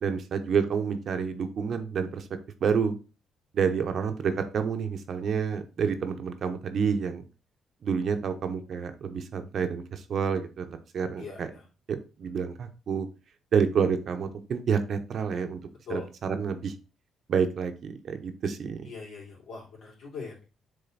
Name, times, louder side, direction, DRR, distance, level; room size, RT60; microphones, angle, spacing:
voice 1, 0.0-2.3 2.6-3.0 3.5-7.2 7.8-11.5 11.9-13.1 13.5-15.6 15.9-16.7 17.3-18.9, right 6 dB, 60° right, 8 dB, 0.9 m, -28 dB
voice 2, 11.2-11.6 15.9-16.1 18.8-20.4, left 4 dB, 70° left, -3 dB, 3.3 m, -41 dB
6.8 x 3.7 x 4.0 m, 0.33 s
cardioid pair, 90°, 0 cm